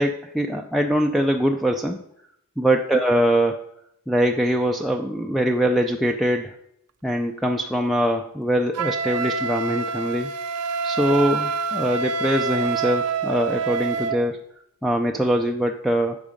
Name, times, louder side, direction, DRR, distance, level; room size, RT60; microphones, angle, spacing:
voice 1, 0.0-2.0 2.6-3.6 4.1-6.5 7.0-10.3 10.8-14.4 14.8-16.2, equal, ahead, 1 dB, 0.4 m, -22 dB
Wind instrument woodwind instrument, 8.7-14.2, right 4 dB, 85° right, 0.5 m, -26 dB
12.5 x 4.8 x 5.1 m, 0.76 s
head